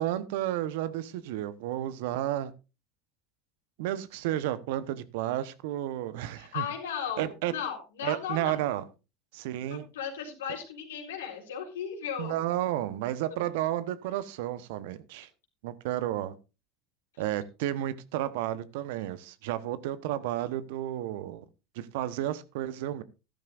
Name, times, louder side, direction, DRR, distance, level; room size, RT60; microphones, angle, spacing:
voice 1, 0.0-2.5 3.8-6.6 7.2-7.5 8.0-8.8 9.3-9.8 12.2-15.3 15.6-16.3 17.2-21.4 21.7-23.0, right 13 dB, 65° right, 15 dB, 1.0 m, -32 dB
voice 2, 6.4-8.6 9.7-12.3, left 8 dB, 80° left, 2 dB, 3.9 m, -36 dB
14.0 x 12.0 x 2.5 m, 0.29 s
hypercardioid pair, 75°, 0 cm